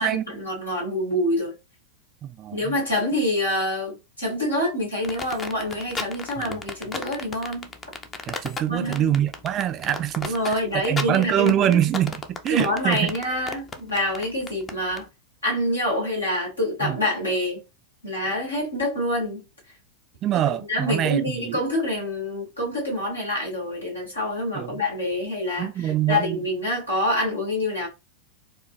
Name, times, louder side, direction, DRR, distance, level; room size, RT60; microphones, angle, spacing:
voice 1, 0.0-1.5 2.5-7.7 8.7-9.1 10.2-11.8 12.5-15.1 15.4-17.6 18.0-19.4 20.3-27.9, left 1 dB, 80° left, 2.2 m, -26 dB
voice 2, 2.2-2.7 6.4-6.6 8.3-12.2 12.4-13.1 16.8-17.0 20.2-21.2 21.5-21.6 24.5-24.8 25.6-26.4, right 11 dB, 30° right, 0.4 m, -24 dB
sound 1, 5.0-15.0, left 4 dB, 20° left, 0.6 m, -33 dB
4.6 x 2.3 x 3.1 m
figure-of-eight pair, 90°, 0 cm